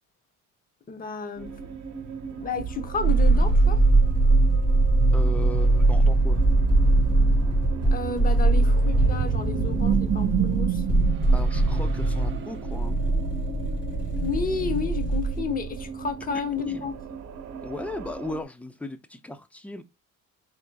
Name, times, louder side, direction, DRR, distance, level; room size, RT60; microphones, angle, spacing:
voice 1, 0.9-1.6 2.3-3.8 7.9-10.8 14.2-16.9, left 5 dB, 25° left, 0.8 m, -31 dB
sound 1, 1.4-18.4, right 7 dB, 60° right, 1.1 m, -36 dB
sound 2, 2.8-16.2, right 9 dB, 40° right, 0.6 m, -31 dB
sound 3, 3.0-15.4 15.7-15.8, right 2 dB, 50° left, 2.1 m, -22 dB
voice 2, 5.1-6.4 11.3-13.0 16.6-16.9 17.6-19.8, left 2 dB, 5° left, 0.5 m, -37 dB
4.6 x 3.7 x 2.2 m
cardioid pair, 120°, 31 cm